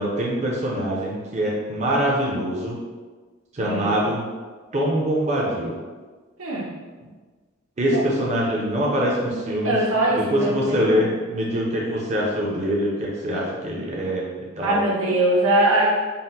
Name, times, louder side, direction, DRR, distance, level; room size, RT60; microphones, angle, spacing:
voice 1, 0.0-2.8 3.5-4.3 4.7-5.8 7.8-9.8 10.1-14.8, equal, 35° right, -4 dB, 0.6 m, -24 dB
voice 2, 3.6-4.0 6.4-6.7 7.8-7.9 9.3-11.1 14.6-15.9, right 1 dB, 85° right, -5 dB, 1.0 m, -22 dB
4.1 x 2.1 x 3.9 m, 1.4 s
head